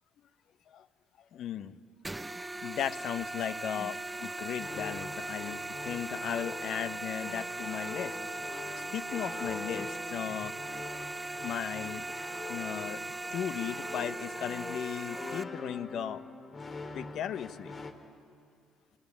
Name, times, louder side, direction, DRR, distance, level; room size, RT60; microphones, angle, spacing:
voice 1, 1.3-1.8 2.6-8.1 8.9-10.5 11.4-12.0 12.5-13.0 13.3-16.2 16.9-17.7, left 9 dB, 60° left, 14 dB, 0.9 m, -36 dB
sound 1, 2.0-15.4, right 2 dB, 15° right, 0.7 m, -39 dB
sound 2, 4.6-17.9, left 3 dB, 40° left, 3.0 m, -44 dB
25.5 x 19.5 x 9.9 m, 2.4 s
hypercardioid pair, 50°, 0 cm